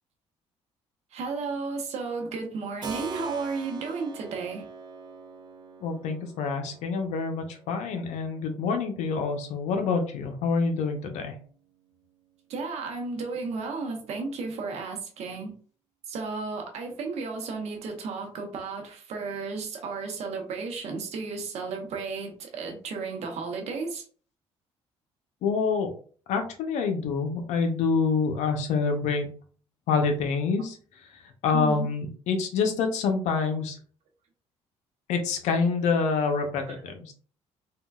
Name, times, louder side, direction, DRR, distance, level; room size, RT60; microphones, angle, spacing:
voice 1, 1.1-4.6 12.5-15.5 16.1-24.0 31.5-31.9 36.7-36.8, right 4 dB, 70° right, 3 dB, 0.8 m, -33 dB
Keyboard (musical), 2.8-11.4, right 6 dB, 40° right, 0.5 m, -44 dB
voice 2, 5.8-11.3 25.4-25.9 26.3-29.3 29.9-30.8 31.4-33.8 35.1-37.1, left 5 dB, 85° left, 5 dB, 0.7 m, -26 dB
3.6 x 2.2 x 2.3 m, 0.43 s
cardioid pair, 105°, 12 cm